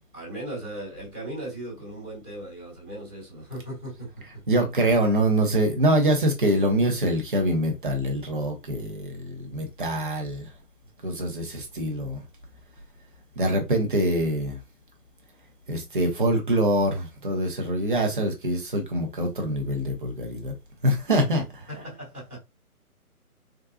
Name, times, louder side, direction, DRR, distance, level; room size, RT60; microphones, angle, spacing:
voice 1, 0.0-4.2 13.4-13.5 21.7-22.4, right 1 dB, 5° left, 0.7 m, -38 dB
voice 2, 4.5-10.5 11.0-12.2 13.4-14.6 15.7-20.5 20.8-21.6, right 1 dB, 35° right, 0.7 m, -24 dB
3.7 x 2.3 x 2.4 m
figure-of-eight pair, 160°, 45 cm